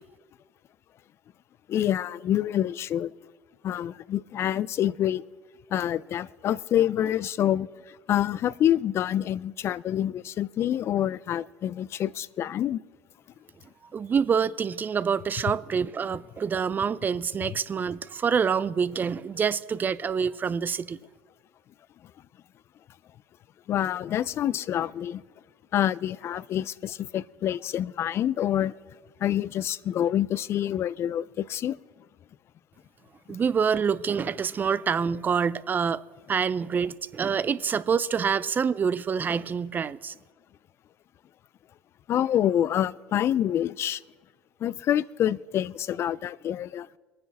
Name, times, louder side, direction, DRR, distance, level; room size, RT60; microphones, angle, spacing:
voice 1, 1.7-3.1 3.6-5.2 5.7-12.8 23.7-25.2 25.7-28.7 29.2-31.8 42.1-44.0 44.6-46.9, left 11 dB, 50° left, 0.4 m, -27 dB
voice 2, 13.9-21.0 33.3-36.0 36.3-40.1, right 6 dB, 35° right, 0.5 m, -26 dB
23.0 x 9.5 x 4.1 m
hypercardioid pair, 75°, 6 cm